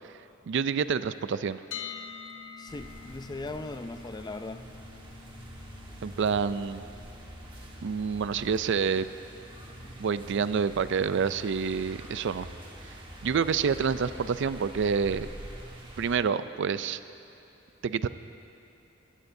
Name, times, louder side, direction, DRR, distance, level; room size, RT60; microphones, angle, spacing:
voice 1, 0.5-1.6 6.0-6.8 7.8-9.1 10.0-12.5 13.2-15.3 16.0-17.0 17.8-18.1, right 6 dB, 60° right, 14 dB, 0.4 m, -27 dB
sound 1, 1.7-13.6, left 7 dB, 65° left, 0.7 m, -49 dB
voice 2, 2.6-4.6, left 2 dB, 20° left, 10 dB, 0.4 m, -38 dB
sound 2, 2.7-16.2, equal, 25° right, 1.5 m, -45 dB
23.5 x 14.5 x 2.7 m, 2.9 s
head